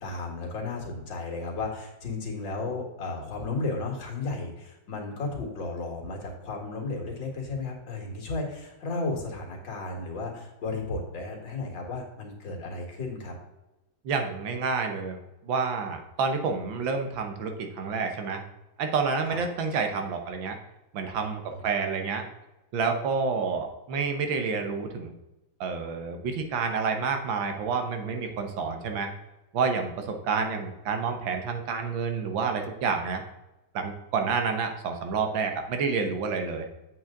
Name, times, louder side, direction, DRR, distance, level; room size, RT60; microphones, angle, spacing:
voice 1, 0.0-13.3 19.3-19.4 21.5-21.6, left 3 dB, 70° left, 1 dB, 2.6 m, -34 dB
voice 2, 14.0-15.2 15.4-18.4 18.8-20.6 20.9-22.3 22.7-25.1 25.6-29.1 29.5-33.2 33.7-36.7, right 5 dB, 80° right, 5 dB, 1.8 m, -29 dB
7.9 x 7.8 x 3.8 m, 1.0 s
omnidirectional pair, 2.1 m